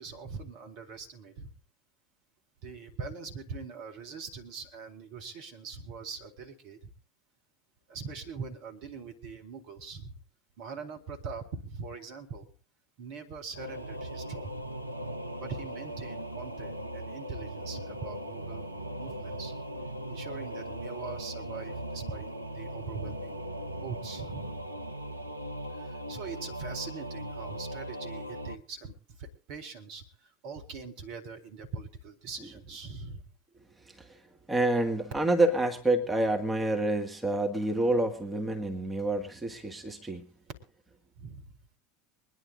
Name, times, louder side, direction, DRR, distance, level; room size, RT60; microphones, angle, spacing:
voice 1, 0.0-1.5 2.6-6.9 7.9-10.2 10.6-12.5 13.0-14.7 15.4-18.6 19.0-19.5 20.1-23.4 23.8-24.5 25.7-33.2 41.2-41.5, right 4 dB, 55° right, 3 dB, 2.5 m, -42 dB
Singing / Musical instrument, 13.5-28.6, right 1 dB, 90° right, 0.6 m, -39 dB
voice 2, 34.5-40.3, right 2 dB, 10° right, 4 dB, 1.8 m, -28 dB
24.0 x 10.5 x 3.8 m, 0.34 s
figure-of-eight pair, 75°, 0 cm